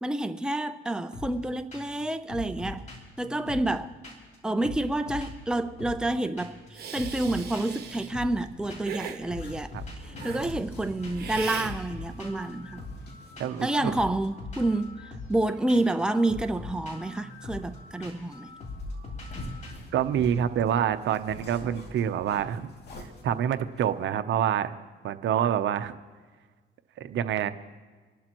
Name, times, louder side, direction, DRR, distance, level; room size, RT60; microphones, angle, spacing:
voice 1, 0.0-2.9 3.2-3.9 4.4-9.7 10.0-12.8 13.6-15.0 15.3-18.5, right 2 dB, 5° right, 0.6 m, -29 dB
sound 1, 1.1-1.4 1.7-2.0 2.3-4.4 4.6-6.1 6.4-6.7 6.9-9.0 9.3-19.7, left 2 dB, 35° left, 3.4 m, -42 dB
Hiss, 6.7-8.1 8.8-9.2 10.2-10.4 11.2-11.7, right 7 dB, 50° right, 1.5 m, -38 dB
sound 2, 7.7-14.1 14.4-14.5 17.4-23.9, left 1 dB, 55° left, 2.6 m, -45 dB
voice 2, 13.4-13.9 19.9-22.7 23.2-24.7 25.0-26.0 27.0-27.5, right 9 dB, 70° right, 0.7 m, -27 dB
27.5 x 12.0 x 3.0 m
cardioid pair, 90°, 20 cm